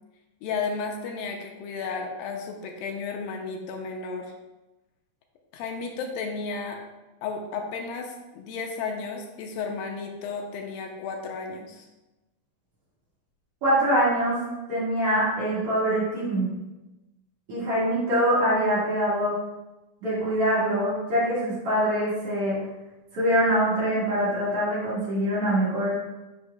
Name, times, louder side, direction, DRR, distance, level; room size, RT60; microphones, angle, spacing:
voice 1, 0.4-4.3 5.5-6.8 7.2-11.9, left 4 dB, 85° left, 3 dB, 2.4 m, -33 dB
voice 2, 13.6-14.4 14.7-16.5 17.5-19.4 20.0-22.6 23.1-25.9, equal, 45° right, -9 dB, 2.6 m, -24 dB
6.7 x 6.2 x 2.4 m, 1.1 s
omnidirectional pair, 4.2 m